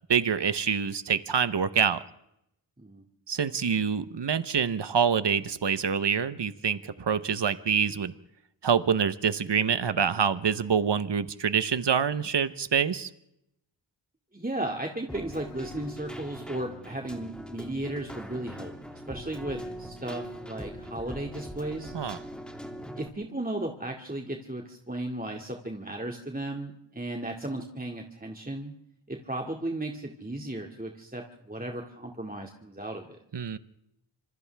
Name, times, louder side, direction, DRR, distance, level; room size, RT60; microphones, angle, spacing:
voice 1, 0.1-2.0 3.3-8.1 8.6-13.1 21.9-22.2 33.3-33.6, right 7 dB, 70° right, 13 dB, 1.0 m, -26 dB
voice 2, 14.3-21.9 23.0-28.7 29.1-33.2, right 1 dB, 20° right, 1 dB, 2.3 m, -35 dB
Keyboard (musical), 15.1-23.1, equal, ahead, 2.7 m, -41 dB
28.0 x 26.5 x 3.5 m, 0.80 s
wide cardioid pair, 60°, 44 cm